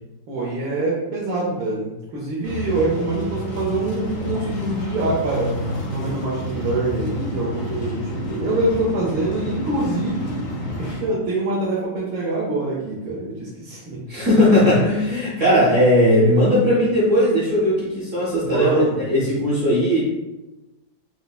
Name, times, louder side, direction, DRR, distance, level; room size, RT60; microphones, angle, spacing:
voice 1, 0.3-5.5 5.9-10.3 10.8-14.0 15.5-15.6 18.4-19.1, right 2 dB, 80° right, -7 dB, 1.5 m, -25 dB
sound 1, 2.4-11.0, left 1 dB, 70° left, 0.8 m, -29 dB
voice 2, 14.1-20.0, left 1 dB, 55° right, -8 dB, 0.9 m, -18 dB
5.5 x 2.0 x 2.3 m, 1.0 s
omnidirectional pair, 2.1 m